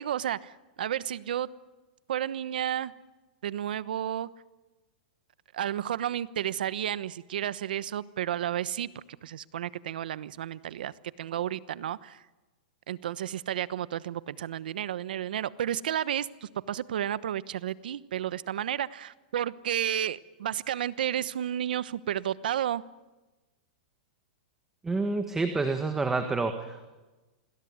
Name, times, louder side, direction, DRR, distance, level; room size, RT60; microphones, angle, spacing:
voice 1, 0.0-1.5 2.1-2.9 3.4-4.3 5.5-8.9 9.2-10.9 11.2-12.2 12.9-22.8, right 10 dB, 80° right, 16 dB, 1.0 m, -32 dB
voice 2, 24.8-26.9, right 3 dB, 10° right, 7 dB, 1.6 m, -28 dB
28.0 x 21.0 x 9.6 m, 1.2 s
supercardioid pair, 155°, 5 cm